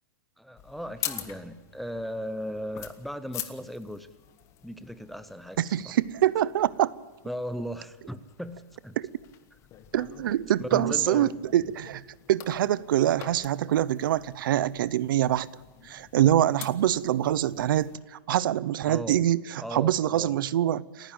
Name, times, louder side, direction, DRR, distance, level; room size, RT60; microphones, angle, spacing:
voice 1, 0.4-4.1 4.6-5.9 7.2-9.0 10.6-11.3 18.9-19.2 19.6-20.4, equal, ahead, 0.5 m, -37 dB
sound 1, 0.6-18.0, left 11 dB, 25° left, 1.2 m, -45 dB
voice 2, 5.6-6.9 9.0-9.1 9.9-12.0 12.3-15.5 15.8-21.1, right 12 dB, 65° right, 0.7 m, -25 dB
29.0 x 10.0 x 8.8 m
supercardioid pair, 165°, 12 cm